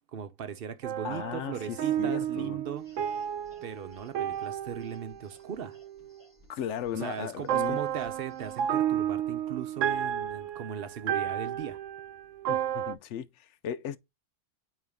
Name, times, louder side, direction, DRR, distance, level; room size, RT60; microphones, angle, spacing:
voice 1, 0.1-3.2 3.6-5.8 7.0-11.8, right 8 dB, 55° right, 0.9 m, -38 dB
sound 1, 0.8-6.2 7.5-12.9, right 10 dB, 85° right, 1.0 m, -32 dB
voice 2, 1.0-2.6 6.5-7.8 12.5-14.0, left 9 dB, 75° left, 0.9 m, -36 dB
sound 2, 2.8-8.7, left 1 dB, 25° left, 3.9 m, -61 dB
9.0 x 3.1 x 3.5 m
omnidirectional pair, 1.2 m